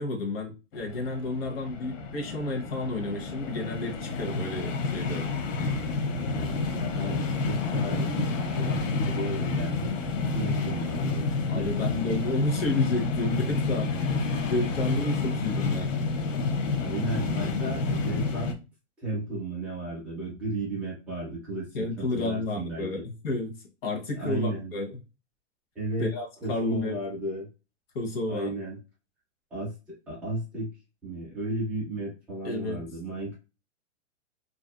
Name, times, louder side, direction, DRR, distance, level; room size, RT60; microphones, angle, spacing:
voice 1, 0.0-5.3 11.5-13.9 14.5-15.9 21.7-23.5 23.8-24.9 26.0-27.0 27.9-28.5 32.4-32.8, left 2 dB, 50° left, 2 dB, 0.9 m, -31 dB
sound 1, 0.7-18.5, left 4 dB, 75° left, 0.7 m, -29 dB
voice 2, 6.1-9.9 10.2-11.2 11.5-11.9 14.8-15.0 16.8-18.6 19.0-23.0 24.2-24.7 25.7-26.1 26.4-27.5 28.3-28.8 29.5-30.7 31.0-33.3, right 2 dB, 5° right, -6 dB, 0.3 m, -34 dB
2.5 x 2.1 x 2.3 m, 0.29 s
hypercardioid pair, 145°, 38 cm